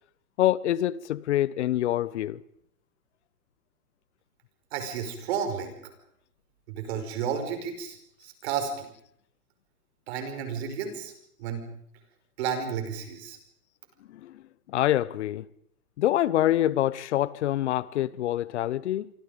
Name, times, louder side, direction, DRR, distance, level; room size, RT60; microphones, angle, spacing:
voice 1, 0.4-2.4 14.2-14.3 14.7-15.4 16.0-19.1, left 13 dB, 45° left, 0.9 m, -25 dB
voice 2, 4.7-5.8 6.7-8.9 10.1-11.1 11.4-11.7 12.4-13.4, right 7 dB, 45° right, 5.4 m, -32 dB
27.5 x 25.0 x 5.2 m
hypercardioid pair, 155°, 46 cm